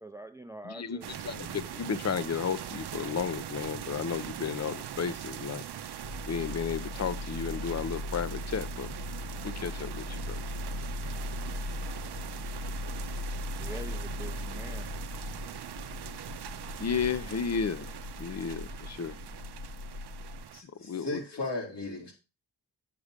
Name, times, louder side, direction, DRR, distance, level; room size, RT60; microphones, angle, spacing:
voice 1, 0.0-1.2 13.5-14.9, right 1 dB, 5° right, 0.6 m, -44 dB
voice 2, 0.6-5.6 6.3-8.9 9.4-10.4 16.8-17.9 18.2-19.2 20.8-21.2, left 6 dB, 40° left, 0.7 m, -33 dB
sound 1, 1.0-20.6, right 10 dB, 70° right, 0.7 m, -41 dB
sound 2, 6.0-20.5, left 2 dB, 70° left, 1.2 m, -39 dB
voice 3, 20.5-22.1, left 2 dB, 85° left, 4.3 m, -36 dB
8.6 x 6.7 x 5.1 m
wide cardioid pair, 115°, 40 cm